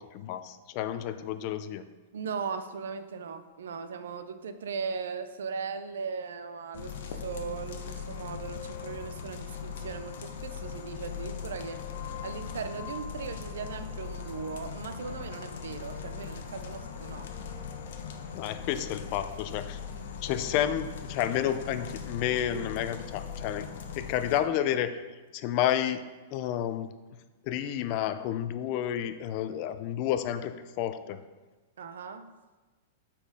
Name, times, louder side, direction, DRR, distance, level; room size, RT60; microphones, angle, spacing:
voice 1, 0.0-1.8 18.3-19.8 20.2-23.7 24.0-24.9 25.3-26.0 26.3-26.9 27.4-31.2, left 10 dB, 40° left, 11 dB, 0.4 m, -30 dB
voice 2, 2.1-11.8 12.2-17.3 31.8-32.3, right 5 dB, 90° right, 10 dB, 0.5 m, -38 dB
sound 1, 6.7-24.4, left 6 dB, 70° left, 0.7 m, -40 dB
9.0 x 4.3 x 3.6 m, 1.2 s
supercardioid pair, 155°, 0 cm